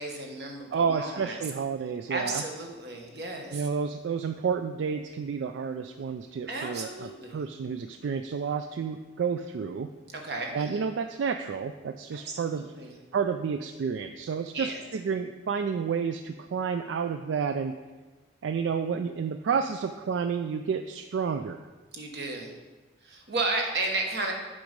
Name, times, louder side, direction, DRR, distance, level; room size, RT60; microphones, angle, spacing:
voice 1, 0.0-1.4 2.1-3.7 6.5-7.4 10.1-10.8 12.1-13.0 14.5-14.8 21.9-22.6 23.0-24.3, right 2 dB, 60° right, 2 dB, 1.2 m, -33 dB
voice 2, 0.7-2.4 3.5-9.9 10.5-12.6 13.1-17.7 18.4-21.6, right 6 dB, 80° right, 8 dB, 0.3 m, -30 dB
7.7 x 5.2 x 5.2 m, 1.3 s
head